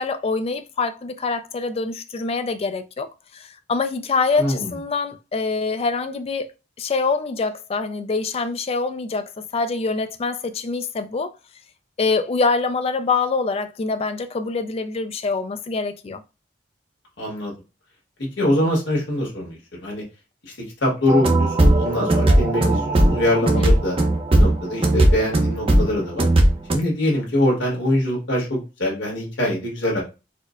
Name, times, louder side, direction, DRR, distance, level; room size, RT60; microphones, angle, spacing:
voice 1, 0.0-3.1 3.3-6.5 6.8-11.3 12.0-16.2 23.4-23.7, left 4 dB, 35° left, 0.3 m, -25 dB
voice 2, 4.4-4.7 17.2-17.5 18.2-20.0 20.4-24.0 24.3-26.3 26.7-30.0, left 1 dB, 85° left, 1.4 m, -23 dB
sound 1, 21.1-26.8, right 1 dB, 30° right, 0.6 m, -17 dB
4.3 x 2.1 x 2.4 m
head